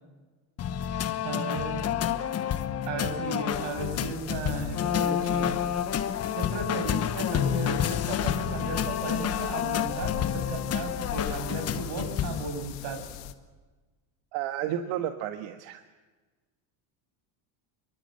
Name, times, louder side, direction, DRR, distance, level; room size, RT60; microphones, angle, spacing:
sound 1, 0.6-12.5, left 9 dB, 30° left, 1.2 m, -29 dB
voice 1, 1.2-1.8 2.8-5.6 6.3-13.0, right 4 dB, 90° right, 6 dB, 6.9 m, -35 dB
sound 2, 3.5-13.3, left 13 dB, 75° left, 2.0 m, -41 dB
voice 2, 14.3-15.8, right 11 dB, 70° right, 7 dB, 1.7 m, -32 dB
26.0 x 23.5 x 7.8 m, 1.3 s
cardioid pair, 150°, 46 cm